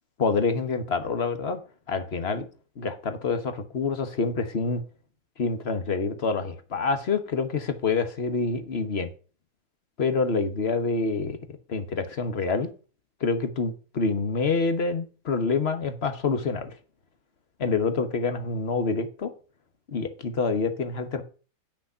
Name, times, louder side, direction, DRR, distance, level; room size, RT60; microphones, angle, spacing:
voice 1, 0.2-1.6 1.9-2.5 2.8-4.8 5.4-9.1 10.0-11.4 11.7-12.7 13.2-16.8 17.6-19.3 19.9-21.2, left 4 dB, 40° left, 9 dB, 1.1 m, -27 dB
8.9 x 6.2 x 5.5 m, 0.36 s
omnidirectional pair, 2.0 m